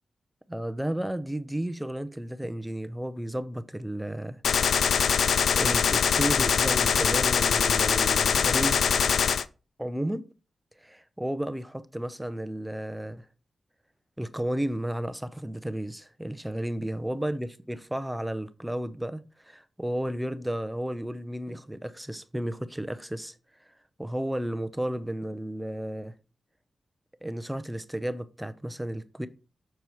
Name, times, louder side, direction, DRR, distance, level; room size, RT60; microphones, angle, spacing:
voice 1, 0.5-4.4 5.5-8.8 9.8-10.3 10.8-13.3 14.2-23.3 24.0-26.1 27.2-29.3, right 1 dB, 5° right, 0.6 m, -33 dB
Gunshot gunfire, 4.4-9.4, left 7 dB, 80° left, 0.3 m, -23 dB
6.9 x 4.5 x 4.7 m
cardioid pair, 90°, 0 cm